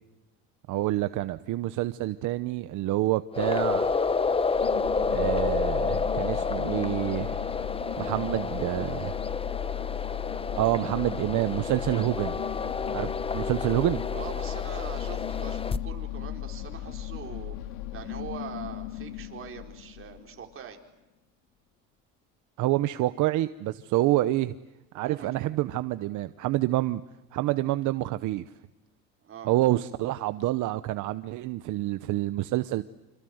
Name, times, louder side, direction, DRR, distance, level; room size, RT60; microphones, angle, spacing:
voice 1, 0.7-3.9 5.1-7.5 8.0-9.1 10.5-12.4 12.9-14.0 22.6-24.6 24.9-27.0 27.3-28.5 29.4-32.8, right 16 dB, 70° right, 12 dB, 0.9 m, -27 dB
sound 1, 3.3-15.8, left 4 dB, 15° left, 1.0 m, -30 dB
sound 2, 4.5-20.4, left 12 dB, 90° left, 2.1 m, -36 dB
voice 2, 14.1-17.5 17.9-20.8 25.0-25.4 29.2-29.5, right 7 dB, 40° right, 3 dB, 4.3 m, -42 dB
27.5 x 27.0 x 7.9 m, 1.0 s
cardioid pair, 120°, 31 cm